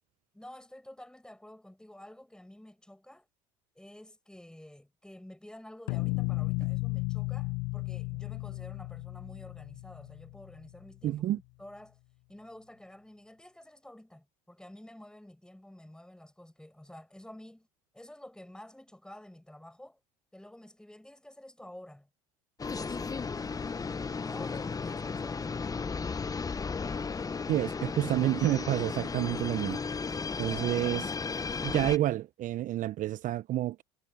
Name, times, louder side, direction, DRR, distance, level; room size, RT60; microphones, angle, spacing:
voice 1, 0.3-3.3 3.7-12.0 12.3-17.7 17.9-20.0 20.3-22.1 22.6-23.2 24.1-26.1 30.5-30.6 31.5-31.8, left 1 dB, 5° left, 6.0 m, -50 dB
sound 1, 5.9-10.8, left 28 dB, 65° left, 0.6 m, -34 dB
voice 2, 11.0-11.4 27.5-29.8 30.4-31.1 31.6-33.8, right 14 dB, 50° right, 1.1 m, -29 dB
sound 2, 22.6-32.0, left 5 dB, 20° left, 1.1 m, -34 dB
hypercardioid pair, 75°, 17 cm